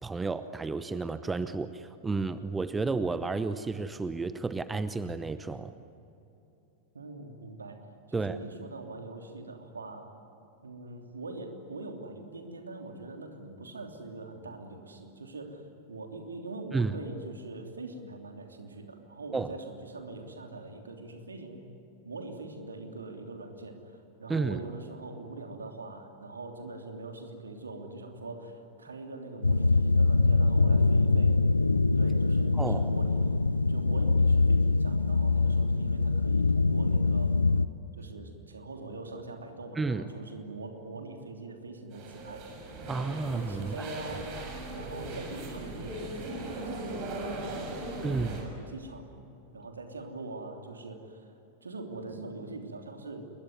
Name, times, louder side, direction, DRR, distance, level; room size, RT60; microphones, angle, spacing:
voice 1, 0.0-5.7 8.1-8.4 16.7-16.9 19.3-19.5 24.3-24.6 32.6-32.9 39.8-40.1 42.8-43.9 48.0-48.4, right 4 dB, 10° right, 13 dB, 0.9 m, -31 dB
voice 2, 6.9-10.1 10.6-21.7 22.0-31.4 31.9-33.4 33.7-37.3 38.0-42.4 42.8-44.3 44.7-49.1 49.5-51.3 51.6-53.3, right 3 dB, 75° right, 3 dB, 3.1 m, -43 dB
sound 1, 29.4-37.7, left 3 dB, 80° left, 0.5 m, -24 dB
sound 2, 41.9-48.4, right 1 dB, 45° right, 7.1 m, -38 dB
28.0 x 22.0 x 9.5 m, 2.8 s
figure-of-eight pair, 90°, 0 cm